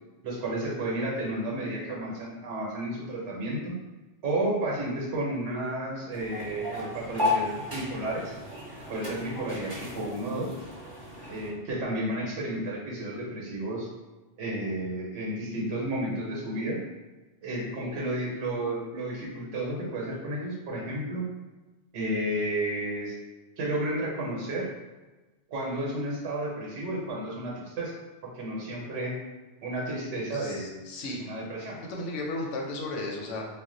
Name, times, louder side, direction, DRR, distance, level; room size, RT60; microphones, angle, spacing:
voice 1, 0.2-3.8 4.2-8.3 8.9-10.6 11.3-13.9 14.4-16.8 17.4-21.2 21.9-23.1 23.6-24.7 25.5-27.9 28.2-29.2 29.6-30.9 31.2-31.8, right 1 dB, 85° right, -3 dB, 1.1 m, -32 dB
sound 1, 6.1-11.5, left 3 dB, 20° right, 0.9 m, -34 dB
voice 2, 30.3-31.2 31.6-33.5, left 2 dB, 85° left, -1 dB, 1.0 m, -35 dB
2.4 x 2.1 x 3.7 m, 1.2 s
omnidirectional pair, 1.2 m